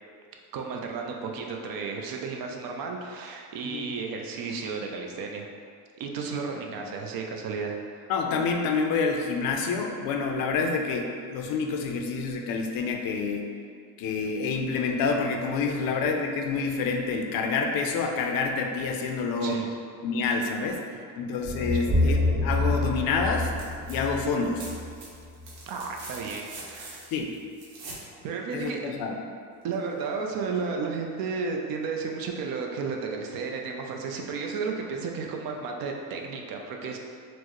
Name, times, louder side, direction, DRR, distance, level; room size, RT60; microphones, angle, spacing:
voice 1, 0.5-5.5 6.0-7.8 19.4-19.7 21.7-21.8 25.7-27.0 28.2-28.9 29.6-37.0, right 5 dB, 60° right, 1 dB, 0.5 m, -33 dB
voice 2, 8.1-13.5 14.0-19.6 20.0-23.5 23.9-24.6 27.1-27.3 28.5-29.2, left 4 dB, 60° left, 2 dB, 0.5 m, -28 dB
sound 1, 21.4-25.6, left 2 dB, 10° right, 0.8 m, -27 dB
sound 2, 23.4-24.0 24.2-28.1 29.7-29.8, right 2 dB, 85° right, 1.0 m, -44 dB
4.4 x 2.1 x 2.9 m, 2.3 s
cardioid pair, 140°, 40 cm